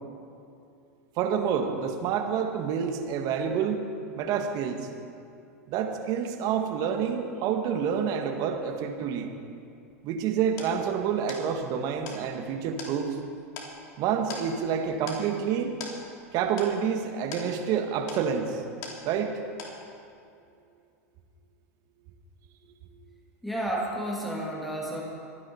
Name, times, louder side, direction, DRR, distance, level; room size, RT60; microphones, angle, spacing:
voice 1, 1.2-3.8 4.2-4.9 5.7-9.3 10.0-13.2 14.0-15.8 16.3-18.6 19.0-19.3, right 7 dB, 50° right, 4 dB, 1.8 m, -28 dB
sound 1, 9.9-19.3 19.6-20.2, left 3 dB, 50° left, 3.3 m, -43 dB
voice 2, 23.4-25.0, right 1 dB, ahead, -4 dB, 2.5 m, -31 dB
24.0 x 9.9 x 4.5 m, 2.5 s
hypercardioid pair, 100°, 8 cm